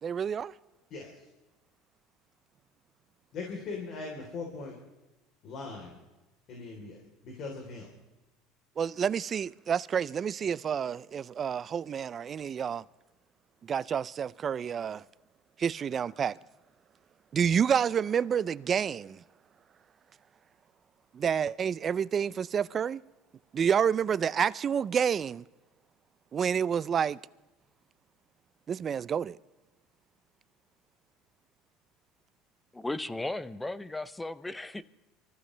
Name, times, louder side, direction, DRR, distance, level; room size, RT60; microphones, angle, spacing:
voice 1, 0.0-0.5 8.8-12.8 13.6-15.0 15.6-16.4 17.3-19.2 21.1-23.0 23.5-25.4 26.3-27.2 28.7-29.4, right 7 dB, 30° right, 0.5 m, -29 dB
voice 2, 0.9-1.2 3.3-4.8 5.4-5.9 6.5-7.9, left 4 dB, 50° left, 3.7 m, -40 dB
voice 3, 32.7-34.8, left 2 dB, 10° left, 0.6 m, -36 dB
25.0 x 14.5 x 3.3 m
supercardioid pair, 125°, 0 cm